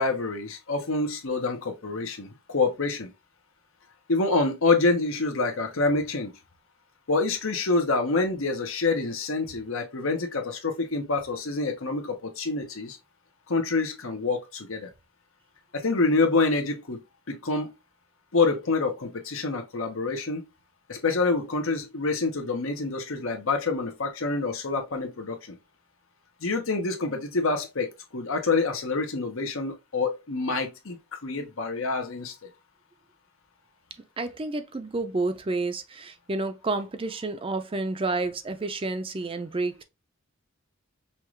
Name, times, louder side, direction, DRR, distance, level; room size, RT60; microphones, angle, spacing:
voice 1, 0.0-3.1 4.1-6.3 7.1-13.0 13.5-14.9 15.7-17.0 17.3-17.7 18.3-20.4 20.9-25.6 26.4-31.0 31.2-32.3, left 3 dB, 75° left, 1.0 m, -27 dB
voice 2, 34.2-39.8, right 3 dB, 25° right, 0.5 m, -30 dB
5.6 x 2.5 x 3.1 m
head